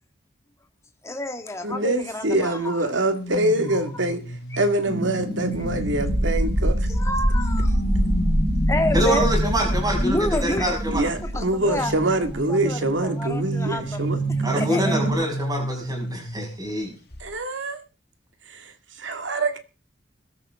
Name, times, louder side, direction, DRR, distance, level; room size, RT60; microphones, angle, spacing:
voice 1, 1.0-2.8 3.7-3.8 4.5-4.6 6.9-7.8 8.7-9.3 10.0-10.7 11.2-12.0 12.5-14.1 14.6-15.0, left 1 dB, 15° left, 1.8 m, -29 dB
voice 2, 1.6-4.2 4.6-6.9 10.9-14.6 17.2-17.8 18.5-18.7 19.0-19.6, right 1 dB, 85° right, 2.2 m, -25 dB
sound 1, 3.1-6.7 7.3-10.6 11.6-16.8 17.1-17.4, right 1 dB, 60° left, 1.8 m, -31 dB
sound 2, 4.9-15.1, equal, 35° right, 6.8 m, -25 dB
voice 3, 8.9-11.0 14.4-16.9, right 1 dB, 20° right, 6.8 m, -25 dB
21.0 x 13.5 x 3.7 m
head